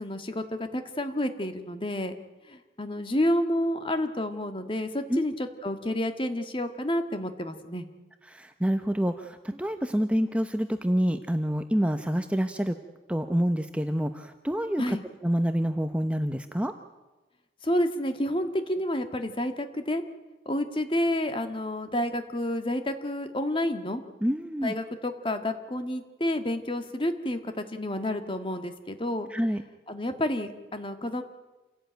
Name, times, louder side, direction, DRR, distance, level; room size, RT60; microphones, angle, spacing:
voice 1, 0.0-2.1 2.5-7.9 14.8-15.0 17.6-20.0 20.5-24.0 24.6-29.3 29.9-31.2, left 1 dB, 30° left, 8 dB, 1.7 m, -29 dB
voice 2, 8.3-12.7 13.1-15.0 15.2-16.7 24.2-24.7 29.3-29.6, equal, 5° right, 7 dB, 0.8 m, -27 dB
27.5 x 17.0 x 9.1 m, 1.2 s
head